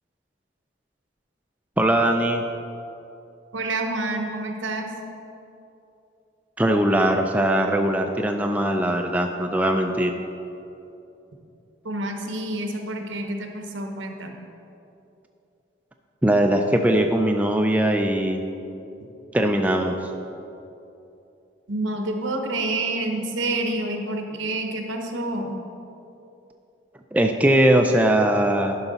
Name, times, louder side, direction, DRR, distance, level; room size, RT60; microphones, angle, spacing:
voice 1, 1.8-2.4 6.6-10.2 16.2-18.4 19.3-19.9 27.1-28.8, right 1 dB, 10° right, 3 dB, 0.3 m, -20 dB
voice 2, 3.5-4.9 11.8-14.4 21.7-25.6, right 2 dB, 85° right, 3 dB, 0.9 m, -28 dB
11.0 x 5.7 x 4.0 m, 2.8 s
head